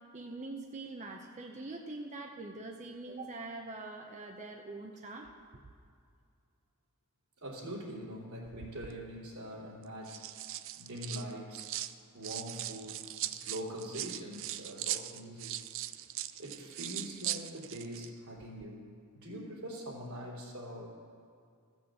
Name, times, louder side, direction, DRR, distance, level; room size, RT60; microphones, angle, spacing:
voice 1, 0.1-5.3, right 2 dB, 35° right, 2 dB, 0.7 m, -43 dB
voice 2, 7.4-10.3 10.8-11.7 12.1-15.6 16.4-18.9 19.1-20.9, equal, 80° right, -3 dB, 3.1 m, -43 dB
sound 1, 8.4-9.0 9.8-11.9 12.2-18.1 18.4-18.6, right 13 dB, 60° right, 0.4 m, -40 dB
15.0 x 6.3 x 7.2 m, 2.3 s
head